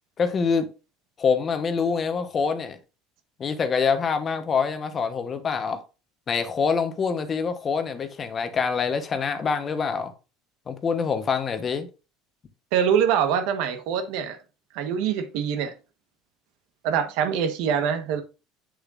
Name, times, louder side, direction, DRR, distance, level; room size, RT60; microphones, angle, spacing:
voice 1, 0.2-0.7 1.2-2.8 3.4-5.8 6.3-10.1 10.7-11.9, left 5 dB, 30° left, 1.0 m, -25 dB
voice 2, 12.7-14.4 14.7-15.7 16.8-18.2, right 8 dB, 75° right, 1.2 m, -24 dB
7.9 x 6.8 x 2.5 m
cardioid pair, 140°, 0 cm